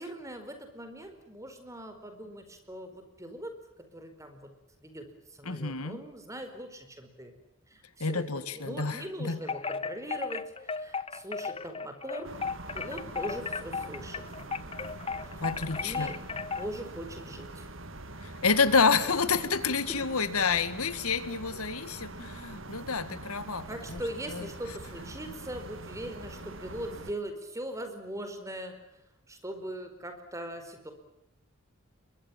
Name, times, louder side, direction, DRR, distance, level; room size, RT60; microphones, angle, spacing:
voice 1, 0.0-3.5 3.9-4.5 4.8-7.3 7.7-12.4 12.7-14.2 15.2-15.4 15.7-16.2 16.6-17.7 22.4-22.5 23.7-29.0 29.3-30.9, right 1 dB, 15° right, 7 dB, 4.7 m, -41 dB
voice 2, 5.4-6.0 8.0-9.4 15.4-16.1 18.2-24.0 24.3-24.5, left 5 dB, 85° left, 13 dB, 2.0 m, -29 dB
Wind chime, 9.4-16.8, left 5 dB, 25° left, 0.9 m, -35 dB
sound 1, 12.2-27.1, right 2 dB, 60° right, 2.1 m, -44 dB
29.5 x 23.0 x 7.3 m, 0.86 s
head